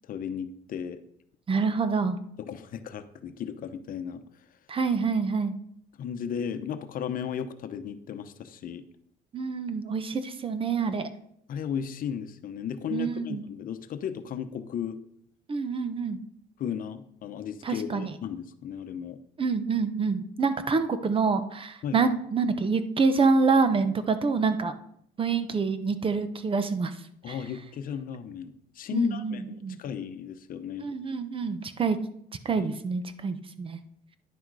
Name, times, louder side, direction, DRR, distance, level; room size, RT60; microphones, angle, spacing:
voice 1, 0.0-1.0 2.5-4.2 6.0-8.8 11.5-15.0 16.6-19.2 21.8-22.1 27.2-30.9 32.5-32.7, left 8 dB, 55° left, 10 dB, 0.8 m, -35 dB
voice 2, 1.5-2.2 4.7-5.5 9.3-11.1 12.9-13.4 15.5-16.2 17.6-18.1 19.4-24.7 25.2-26.9 27.3-27.4 28.9-29.8 30.8-32.0 32.4-33.8, right 4 dB, 30° right, 11 dB, 0.8 m, -26 dB
10.0 x 6.3 x 4.8 m, 0.72 s
cardioid pair, 110°, 17 cm